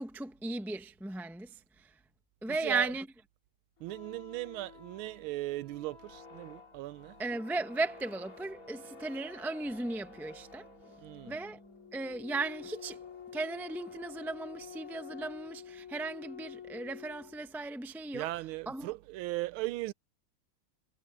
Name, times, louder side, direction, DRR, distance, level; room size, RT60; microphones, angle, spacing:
voice 1, 0.0-1.9 2.4-3.1 7.2-10.7 11.2-11.6 11.9-13.0 13.3-18.9, right 3 dB, ahead, 0.7 m, -36 dB
sound 1, 3.8-17.5, left 6 dB, 45° left, 2.9 m, -50 dB
voice 2, 3.8-7.1 11.0-11.3 18.1-19.9, right 17 dB, 85° right, 1.4 m, -38 dB
omnidirectional pair, 2.2 m